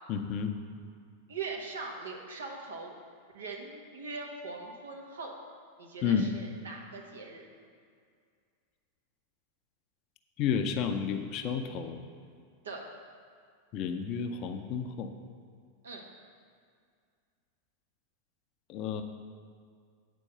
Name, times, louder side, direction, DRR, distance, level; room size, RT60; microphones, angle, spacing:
voice 1, 0.1-0.5 6.0-6.3 10.4-12.0 13.7-15.1 18.7-19.0, left 7 dB, 40° left, 6 dB, 0.6 m, -31 dB
voice 2, 1.3-3.0 3.3-5.3 5.8-7.4 12.6-12.8 15.8-16.0, right 4 dB, 65° right, 0 dB, 1.2 m, -41 dB
8.5 x 4.6 x 6.5 m, 2.2 s
figure-of-eight pair, 90°, 0 cm